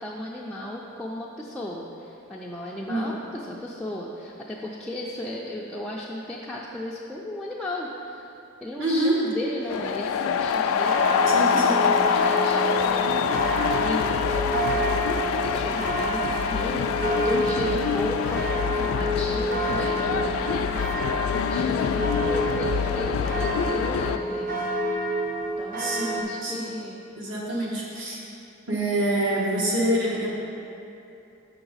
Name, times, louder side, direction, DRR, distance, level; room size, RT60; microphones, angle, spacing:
voice 1, 0.0-8.3 8.6-24.6 24.9-25.2 25.6-27.0 27.5-27.7, left 1 dB, 5° left, -5 dB, 0.4 m, -36 dB
voice 2, 8.8-9.2 11.3-11.8 25.8-26.7 27.1-28.2 28.7-30.3, right 1 dB, 60° right, -5 dB, 1.4 m, -26 dB
sound 1, 9.7-24.2, left 6 dB, 80° left, 0.3 m, -25 dB
sound 2, 10.8-26.2, right 1 dB, 40° right, 0.8 m, -29 dB
6.9 x 5.8 x 4.0 m, 2.8 s
head